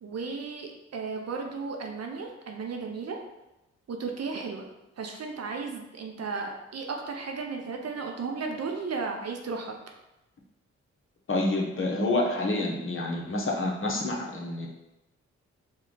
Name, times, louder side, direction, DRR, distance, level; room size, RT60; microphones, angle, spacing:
voice 1, 0.0-3.2 3.9-4.7 5.0-9.8, right 4 dB, 55° right, 2 dB, 0.7 m, -34 dB
voice 2, 11.3-14.7, left 2 dB, 40° left, -1 dB, 1.0 m, -28 dB
4.4 x 2.3 x 3.9 m, 0.95 s
supercardioid pair, 40°, 31 cm